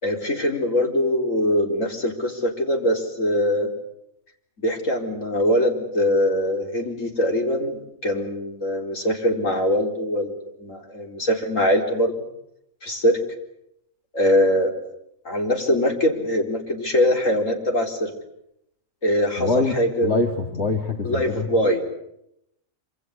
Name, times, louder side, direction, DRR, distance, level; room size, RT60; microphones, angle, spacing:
voice 1, 0.0-3.7 4.6-10.3 10.6-12.1 12.8-13.2 14.1-14.7 15.2-18.1 19.0-20.1 21.0-21.8, equal, 75° left, 3 dB, 4.5 m, -22 dB
voice 2, 19.4-19.8 20.0-21.5, left 3 dB, 55° left, 4 dB, 2.2 m, -24 dB
26.0 x 26.0 x 8.2 m, 0.78 s
omnidirectional pair, 1.4 m